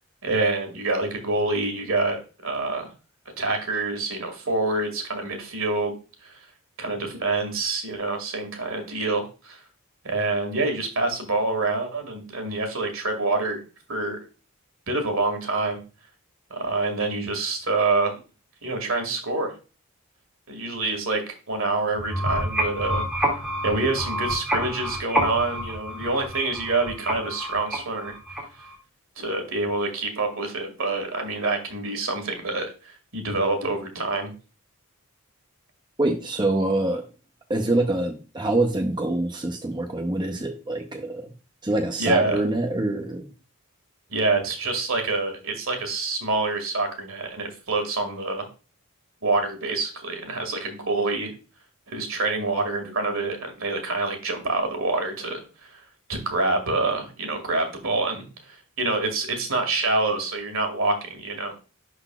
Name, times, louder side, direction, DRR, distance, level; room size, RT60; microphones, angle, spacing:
voice 1, 0.2-2.9 3.4-5.9 6.2-6.4 6.8-9.6 10.0-13.6 13.9-14.2 14.9-15.8 16.5-18.2 18.6-19.5 20.5-23.3 23.6-28.1 29.2-34.3 42.0-42.4 44.1-48.5 49.2-51.3 51.9-55.8 56.1-61.5, right 3 dB, 65° right, 5 dB, 1.9 m, -26 dB
sound 1, 22.0-28.8, equal, 5° right, 2.0 m, -28 dB
voice 2, 36.0-37.0 37.5-41.3 41.6-43.3, right 2 dB, 20° right, 3 dB, 0.6 m, -25 dB
11.0 x 4.1 x 2.3 m, 0.33 s
head